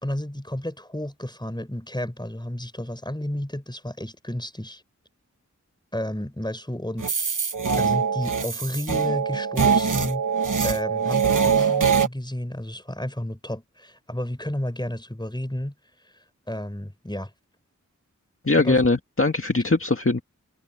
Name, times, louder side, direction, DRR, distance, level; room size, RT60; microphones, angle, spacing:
voice 1, 0.0-4.8 5.9-7.1 7.8-10.2 10.6-15.7 16.5-17.3 18.6-18.8, left 1 dB, 15° left, 5.2 m, -31 dB
sound 1, 7.0-12.1, right 6 dB, 85° right, 1.2 m, -23 dB
voice 2, 18.5-20.2, left 3 dB, 45° left, 2.0 m, -21 dB
wide cardioid pair, 50°, 30 cm